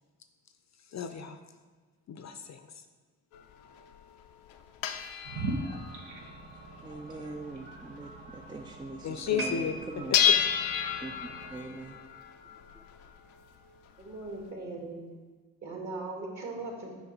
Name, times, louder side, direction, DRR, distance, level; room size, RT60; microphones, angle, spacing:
voice 1, 0.9-1.4 2.1-2.7 9.0-9.8 10.1-10.3, left 7 dB, 40° left, 8 dB, 0.6 m, -33 dB
sound 1, 3.3-8.8 9.2-9.3 9.5-14.4, left 8 dB, 85° left, 0.6 m, -32 dB
sound 2, 5.2-11.7, right 2 dB, 75° right, 1.0 m, -41 dB
voice 2, 6.8-10.2 11.0-12.0 12.7-12.8, right 2 dB, 10° right, 3 dB, 0.4 m, -42 dB
sound 3, 9.4-12.7 13.0-13.2 13.9-14.0, left 1 dB, 25° right, 1.3 m, -42 dB
voice 3, 14.0-15.0 15.6-16.9, right 2 dB, 45° right, 0 dB, 1.9 m, -39 dB
7.0 x 5.1 x 3.9 m, 1.4 s
hypercardioid pair, 40°, 41 cm